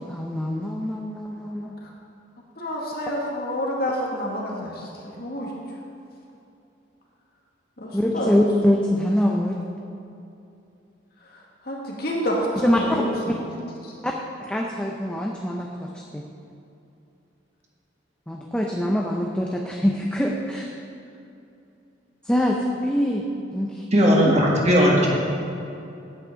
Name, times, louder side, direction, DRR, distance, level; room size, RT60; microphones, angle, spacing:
voice 1, 0.0-1.8 7.9-9.6 12.6-13.0 14.0-14.1 14.4-16.2 18.3-20.7 22.2-23.2 23.5-23.8 24.2-24.4, equal, 5° left, -1 dB, 0.6 m, -24 dB
voice 2, 2.6-5.5 7.8-8.3 11.6-13.4 13.8-13.9, equal, 55° left, -3 dB, 2.0 m, -28 dB
voice 3, 23.9-25.1, equal, 35° right, -3 dB, 1.9 m, -17 dB
9.8 x 5.9 x 7.3 m, 2.7 s
head